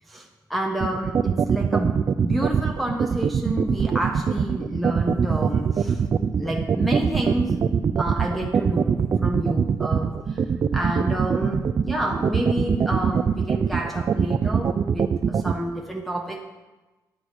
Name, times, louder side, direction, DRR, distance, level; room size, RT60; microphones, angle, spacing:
voice 1, 0.1-6.0 6.4-7.7 8.0-10.4 10.7-16.4, right 1 dB, ahead, 0 dB, 1.2 m, -29 dB
sound 1, 0.8-15.5, right 7 dB, 45° right, 0.6 m, -22 dB
10.5 x 10.0 x 6.4 m, 1.2 s
cardioid pair, 95°, 7 cm